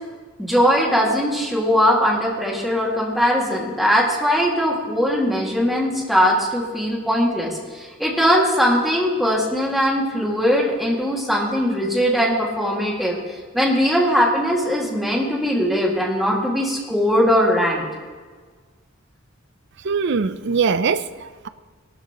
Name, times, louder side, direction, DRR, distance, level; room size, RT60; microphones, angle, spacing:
voice 1, 0.4-13.2 13.5-17.9, equal, ahead, -3 dB, 2.1 m, -20 dB
voice 2, 19.8-21.5, right 5 dB, 60° right, 13 dB, 0.5 m, -22 dB
18.5 x 12.5 x 3.0 m, 1.5 s
head